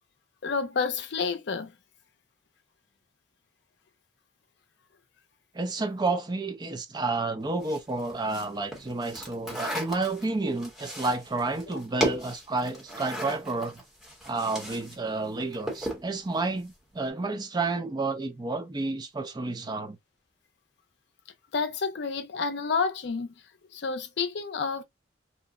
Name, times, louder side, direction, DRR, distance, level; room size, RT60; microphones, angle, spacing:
voice 1, 0.4-1.7 21.5-23.3 23.7-24.8, left 5 dB, 65° left, 0.5 m, -29 dB
voice 2, 5.5-13.8 14.2-20.0, right 3 dB, 25° right, 0.4 m, -30 dB
sound 1, 7.6-15.0 15.2-16.1, equal, ahead, 0.8 m, -35 dB
2.7 x 2.0 x 2.4 m
head